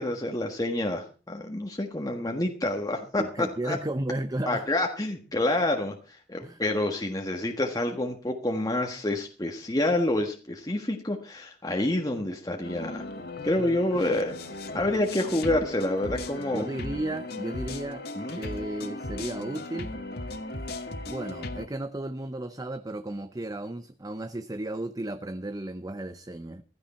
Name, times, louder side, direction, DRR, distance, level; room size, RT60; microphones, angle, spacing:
voice 1, 0.0-3.8 4.5-13.0 13.4-14.4 14.7-16.7 18.2-18.4, left 1 dB, 20° left, 1.5 m, -28 dB
voice 2, 3.2-4.7 6.4-6.6 16.5-18.1 18.3-19.9 21.1-26.6, right 1 dB, 20° right, 0.7 m, -34 dB
sound 1, 12.6-21.7, left 2 dB, 60° left, 1.9 m, -37 dB
16.0 x 13.5 x 4.3 m
head